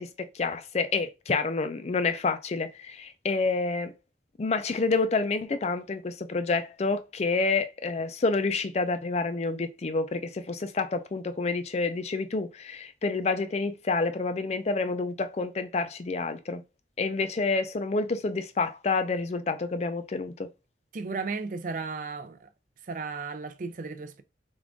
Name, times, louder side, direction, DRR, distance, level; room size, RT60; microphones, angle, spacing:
voice 1, 0.0-3.9 4.4-16.6 17.0-20.5, left 3 dB, 35° left, 0.4 m, -28 dB
voice 2, 20.9-22.5 22.9-24.2, right 4 dB, 45° right, 0.4 m, -34 dB
3.6 x 2.5 x 3.6 m
head